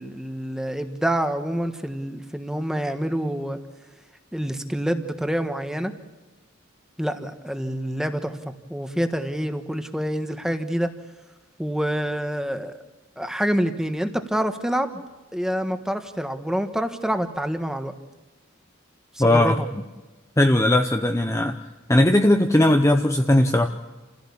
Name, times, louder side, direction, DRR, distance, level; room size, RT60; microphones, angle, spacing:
voice 1, 0.0-3.6 4.3-5.9 7.0-8.4 8.7-10.9 11.6-12.7 13.2-15.0 15.3-17.9 19.1-19.7, equal, 5° right, 7 dB, 1.3 m, -27 dB
voice 2, 19.2-19.6 20.4-21.6 21.9-23.7, left 1 dB, 15° left, 5 dB, 0.7 m, -18 dB
28.5 x 16.0 x 8.6 m, 1.2 s
head